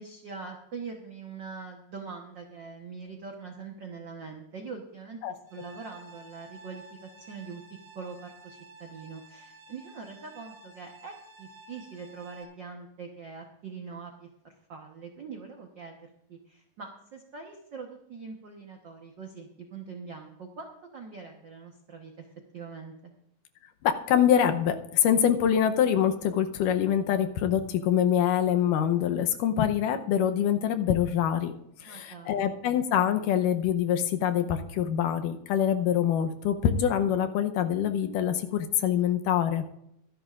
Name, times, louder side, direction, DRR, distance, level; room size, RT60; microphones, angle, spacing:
voice 1, 0.0-7.6 7.9-22.3 22.5-23.1 31.8-32.5, right 5 dB, 80° right, 2 dB, 1.0 m, -43 dB
sound 1, 5.5-12.4, right 2 dB, 35° right, 2.4 m, -52 dB
voice 2, 23.8-31.5 31.8-39.6, left 9 dB, 80° left, 7 dB, 2.3 m, -25 dB
24.0 x 10.5 x 2.5 m, 0.79 s
omnidirectional pair, 3.9 m